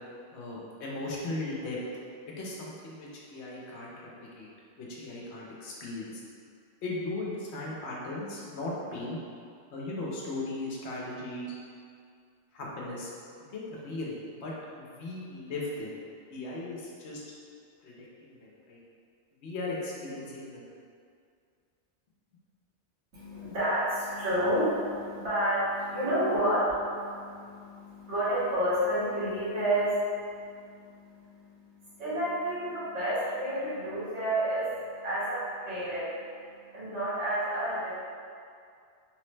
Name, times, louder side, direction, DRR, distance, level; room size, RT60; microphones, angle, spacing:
voice 1, 0.3-1.8 2.4-3.9 4.2-4.5 4.8-6.2 6.8-9.2 9.7-11.5 12.5-13.1 13.5-15.9 16.3-17.2 17.8-18.8 19.4-20.7, left 2 dB, 75° left, -4 dB, 0.9 m, -37 dB
voice 2, 23.1-36.2 36.7-38.0, right 1 dB, 80° right, -12 dB, 1.5 m, -30 dB
3.1 x 2.0 x 3.1 m, 2.3 s
omnidirectional pair, 1.1 m